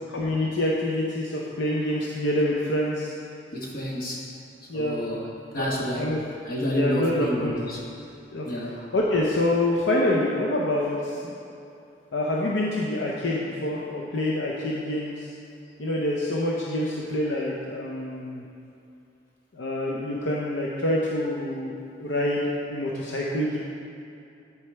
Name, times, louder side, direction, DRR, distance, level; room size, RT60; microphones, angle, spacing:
voice 1, 0.1-3.1 4.7-5.0 5.6-5.7 5.9-6.2 6.8-7.5 8.3-11.3 12.1-15.3 15.8-18.4 19.5-23.6, left 1 dB, 70° left, -4 dB, 0.7 m, -26 dB
voice 2, 3.5-4.3 4.7-5.3 5.5-6.2 6.5-7.9 8.4-8.8, equal, 50° left, -2 dB, 1.1 m, -29 dB
10.5 x 4.7 x 3.4 m, 2.6 s
head